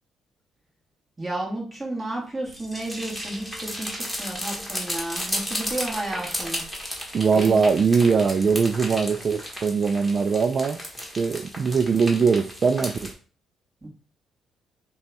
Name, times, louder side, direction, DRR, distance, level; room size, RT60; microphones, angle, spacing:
voice 1, 1.2-6.7 7.3-7.5 13.8-13.9, right 1 dB, 20° right, -1 dB, 1.6 m, -32 dB
sound 1, 2.5-13.1, equal, 5° right, 1.5 m, -34 dB
voice 2, 7.1-10.8 11.2-13.1, right 5 dB, 45° right, 8 dB, 0.3 m, -21 dB
5.2 x 2.3 x 3.9 m, 0.41 s
cardioid pair, 90°, 0 cm